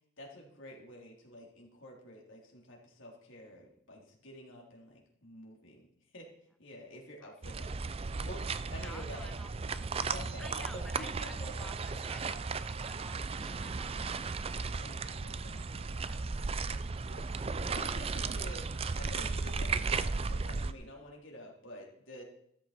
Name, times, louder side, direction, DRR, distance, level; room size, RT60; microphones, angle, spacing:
voice 1, 0.2-5.9 6.1-6.3 6.6-7.8 8.1-9.3 10.1-11.5 14.8-16.3 17.0-22.2, left 1 dB, 75° left, -1 dB, 3.5 m, -49 dB
sound 1, 7.4-20.7, right 4 dB, 30° right, 0.4 m, -35 dB
voice 2, 8.8-9.9 10.4-15.2 15.8-16.7 17.0-17.1, equal, ahead, 7 dB, 0.9 m, -54 dB
15.0 x 13.0 x 4.3 m, 0.70 s
head